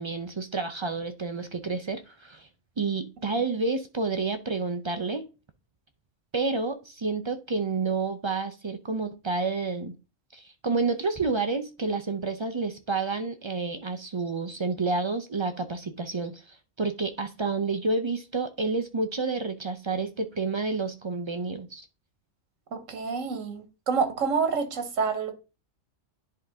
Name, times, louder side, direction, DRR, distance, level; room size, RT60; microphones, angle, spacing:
voice 1, 0.0-2.5 2.8-5.3 6.3-9.9 10.3-21.8, right 3 dB, 50° right, 0.3 m, -29 dB
voice 2, 22.7-25.3, right 5 dB, 85° right, 1.5 m, -28 dB
10.5 x 3.8 x 3.5 m
omnidirectional pair, 1.3 m